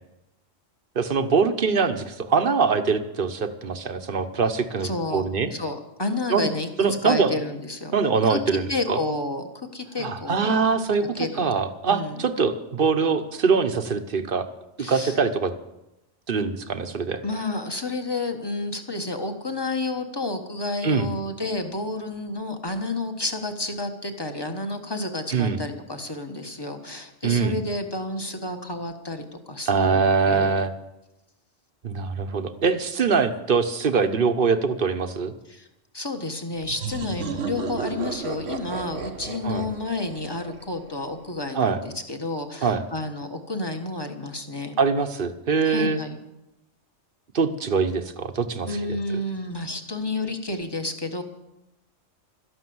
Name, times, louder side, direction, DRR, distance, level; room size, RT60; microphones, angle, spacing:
voice 1, 0.9-5.5 6.3-6.5 6.8-7.3 7.9-9.0 10.0-14.5 14.8-15.5 16.3-17.2 20.8-21.1 25.3-25.6 27.2-27.6 29.7-30.7 31.8-35.3 39.4-39.7 41.5-41.8 42.6-42.8 44.8-46.0 47.3-48.7, right 5 dB, 45° right, 9 dB, 1.1 m, -23 dB
voice 2, 4.8-7.9 8.2-8.4 8.7-10.6 11.1-11.4 11.9-12.2 14.8-15.2 17.2-30.5 35.5-35.7 35.9-44.8 45.6-46.2 48.7-51.2, left 2 dB, 20° left, 5 dB, 1.4 m, -30 dB
sound 1, 36.6-41.2, right 6 dB, 70° right, 1.4 m, -34 dB
13.0 x 11.5 x 7.9 m, 0.93 s
omnidirectional pair, 1.3 m